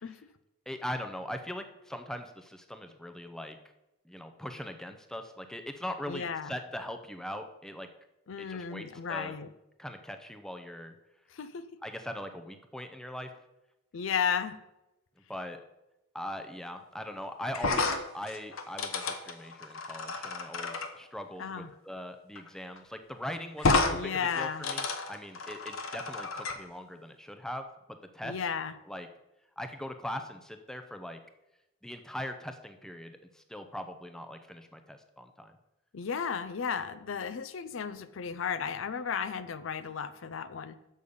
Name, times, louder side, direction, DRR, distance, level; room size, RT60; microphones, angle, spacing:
voice 1, 0.7-3.6 4.0-7.9 8.4-9.4 9.8-10.9 11.8-13.3 15.3-15.6 16.1-28.4 28.9-29.1 29.6-31.2 31.8-35.5, left 1 dB, 5° left, 6 dB, 0.5 m, -41 dB
voice 2, 6.1-6.5 8.3-9.5 11.3-11.8 13.9-14.6 21.4-21.7 23.9-24.7 28.2-28.7 35.9-40.8, left 6 dB, 70° left, 12 dB, 0.5 m, -34 dB
sound 1, 17.5-20.9 22.3-22.5 22.8-22.9 23.6-23.9 24.3-26.6, left 3 dB, 85° left, 0.8 m, -31 dB
6.5 x 5.3 x 6.9 m, 0.93 s
head